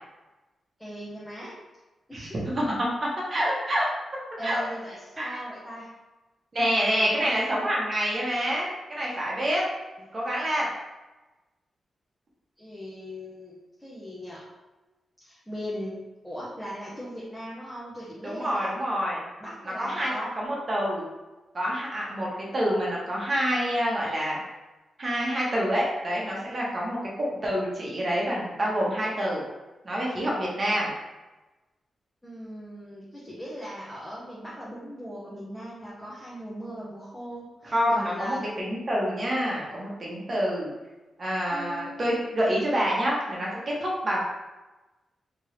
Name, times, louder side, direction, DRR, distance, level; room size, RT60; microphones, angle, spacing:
voice 1, 0.8-1.6 2.1-2.4 4.4-5.9 6.8-7.2 12.6-13.5 13.8-14.4 15.2-16.0 16.2-18.7 19.4-20.3 32.2-38.4 41.5-42.2, equal, 5° left, -7 dB, 0.7 m, -38 dB
voice 2, 3.3-3.9 4.4-4.6 5.2-5.3 6.5-9.6 10.1-10.7 18.2-19.2 19.8-21.0 21.5-24.4 25.0-29.4 29.8-30.9 37.6-40.7 41.2-43.5 43.8-44.2, equal, 30° right, -4 dB, 1.0 m, -27 dB
3.5 x 3.0 x 3.1 m, 1.1 s
wide cardioid pair, 150°, 0 cm